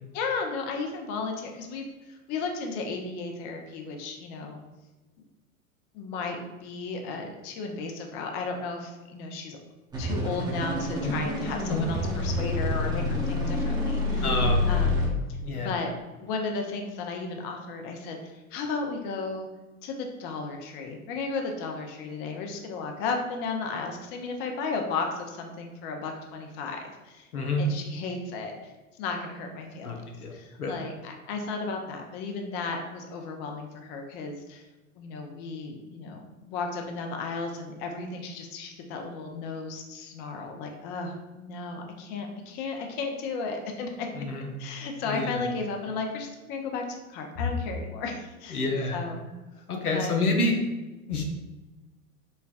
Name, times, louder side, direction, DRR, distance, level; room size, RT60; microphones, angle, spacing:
voice 1, 0.1-4.6 5.9-9.6 10.0-15.1 15.6-15.9 16.2-19.5 19.8-27.3 27.6-28.7 29.0-30.0 30.3-34.6 35.0-44.1 44.6-46.8 47.1-48.7 48.9-49.3 49.9-50.2, left 4 dB, 25° left, 3 dB, 0.4 m, -34 dB
sound 1, 9.9-15.1, left 2 dB, 10° right, 0.7 m, -27 dB
voice 2, 14.2-14.6 15.4-15.7 27.3-27.6 29.8-30.3 30.6-30.8 44.2-44.5 45.1-45.4 48.5-49.0 49.7-50.5 51.1-51.2, left 3 dB, 90° left, 1 dB, 0.8 m, -28 dB
5.4 x 2.2 x 2.3 m, 1.1 s
figure-of-eight pair, 95°, 43 cm